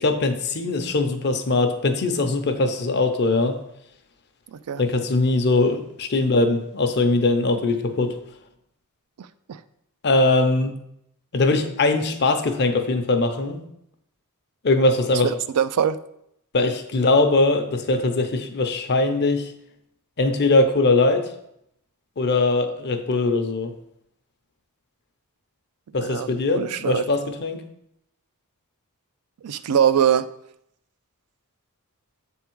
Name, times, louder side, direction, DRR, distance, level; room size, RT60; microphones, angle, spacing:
voice 1, 0.0-3.6 4.8-8.1 10.0-10.7 11.3-13.6 14.6-15.3 16.5-19.5 20.2-21.3 22.2-23.7 25.9-27.6, left 2 dB, 50° left, 7 dB, 0.7 m, -21 dB
voice 2, 4.5-4.8 9.2-9.6 15.1-15.2 15.5-16.0 26.0-26.3 26.6-27.0 29.4-30.3, right 8 dB, 85° right, 12 dB, 0.4 m, -22 dB
7.7 x 3.6 x 4.5 m, 0.77 s
head